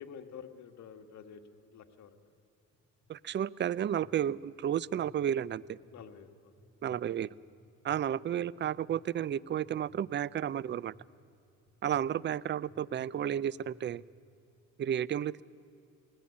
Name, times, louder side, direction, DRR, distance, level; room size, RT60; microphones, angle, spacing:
voice 1, 0.0-2.2 5.9-6.5 6.8-7.0 8.4-8.5 11.9-12.0, left 7 dB, 70° left, 6 dB, 1.7 m, -49 dB
sound 1, 2.7-3.1 3.6-4.1 4.6-5.1 5.6-6.0 6.6-7.0 7.6-8.0 8.6-8.9 9.6-10.0 10.6-11.0 11.7-12.0 12.6-13.0 13.6-14.0, equal, 25° left, 4.1 m, -59 dB
voice 2, 3.1-5.8 6.8-7.3 7.8-10.9 11.8-14.0 14.8-15.4, right 10 dB, 40° right, 22 dB, 0.4 m, -32 dB
19.5 x 19.0 x 8.5 m, 2.5 s
cardioid pair, 90°, 30 cm